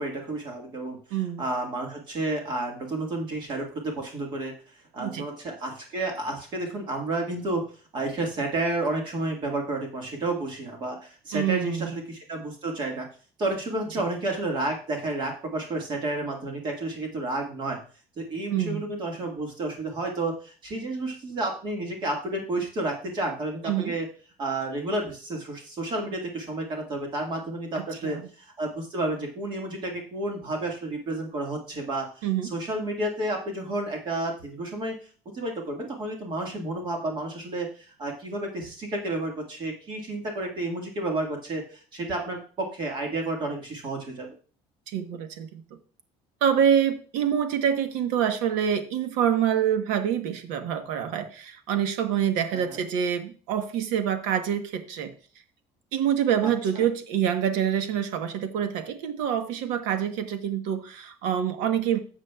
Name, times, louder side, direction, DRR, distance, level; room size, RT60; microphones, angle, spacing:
voice 1, 0.0-4.5 4.9-7.6 7.9-13.1 13.4-17.8 18.2-24.1 24.4-35.0 35.3-44.3 52.5-52.8 56.4-56.5 56.8-56.9, right 2 dB, 40° right, 1 dB, 1.7 m, -31 dB
voice 2, 1.1-1.4 5.0-5.2 11.3-11.9 18.5-18.8 23.6-24.0 28.0-28.2 32.2-32.5 44.9-45.6 46.4-55.1 55.9-62.0, right 9 dB, 85° right, 9 dB, 1.1 m, -26 dB
13.0 x 7.4 x 2.3 m, 0.39 s
cardioid pair, 155°, 13 cm